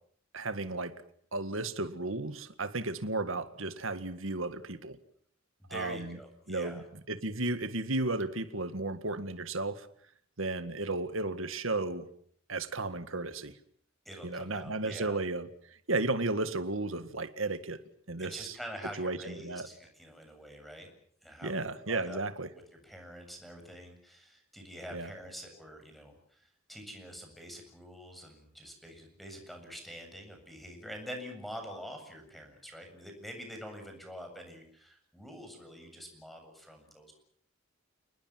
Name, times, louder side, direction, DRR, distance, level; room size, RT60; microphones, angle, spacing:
voice 1, 0.3-1.0 1.3-5.0 5.7-6.2 6.5-9.9 10.4-12.1 12.5-13.5 14.2-15.5 15.9-17.8 18.1-18.6 19.0-19.7 21.4-22.5 24.9-25.1, right 2 dB, 70° right, 11 dB, 1.9 m, -34 dB
voice 2, 5.6-6.8 14.1-15.2 18.2-20.9 21.2-22.2 22.5-37.1, equal, ahead, 4 dB, 7.5 m, -46 dB
29.5 x 20.0 x 7.6 m, 0.62 s
head